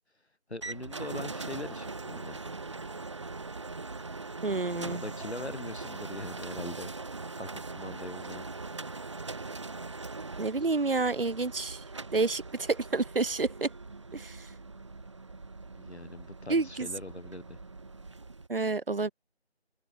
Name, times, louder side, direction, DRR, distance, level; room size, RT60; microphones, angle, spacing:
voice 1, 0.5-2.4 4.7-6.9 7.3-8.4 15.8-17.6, left 2 dB, 80° left, 5.6 m, -42 dB
sound 1, 0.6-18.5, right 3 dB, 25° right, 3.9 m, -41 dB
voice 2, 4.4-5.0 10.4-11.8 12.1-13.7 14.1-14.5 16.5-16.9 18.5-19.1, right 3 dB, 60° right, 1.1 m, -29 dB
open air
figure-of-eight pair, 175°, 32 cm